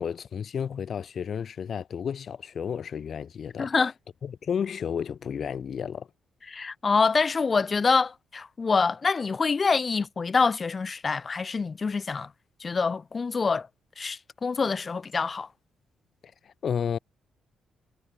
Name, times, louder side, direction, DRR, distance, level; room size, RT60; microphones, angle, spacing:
voice 1, 0.0-3.8 4.2-6.1 16.4-17.0, left 7 dB, 50° left, 6.2 m, -32 dB
voice 2, 3.6-3.9 6.5-12.3 12.6-13.7 14.0-15.5, left 4 dB, 35° left, 4.8 m, -26 dB
cardioid pair, 105°, 0 cm